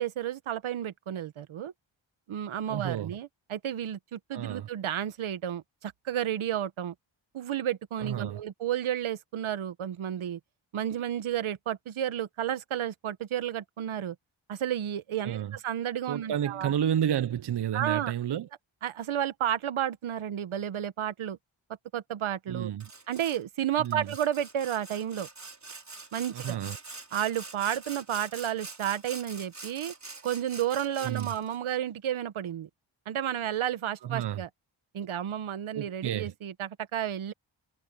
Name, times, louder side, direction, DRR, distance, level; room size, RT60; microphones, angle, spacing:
voice 1, 0.0-1.7 2.3-6.9 7.3-10.4 10.7-14.1 14.5-16.7 17.7-18.1 18.8-21.4 21.9-22.7 23.1-25.3 26.1-26.6 27.1-29.9 30.2-32.7 33.1-34.5 34.9-37.3, right 10 dB, 85° right, 1.2 m, -32 dB
voice 2, 2.7-3.1 4.3-4.7 8.0-8.4 15.2-15.6 16.1-18.5 22.5-22.9 23.8-24.1 26.3-26.8 31.0-31.3 34.0-34.4 35.7-36.3, right 10 dB, 60° right, 0.8 m, -31 dB
Sawing, 22.8-23.4 23.8-31.6, right 3 dB, 35° right, 5.2 m, -45 dB
cardioid pair, 75°, 47 cm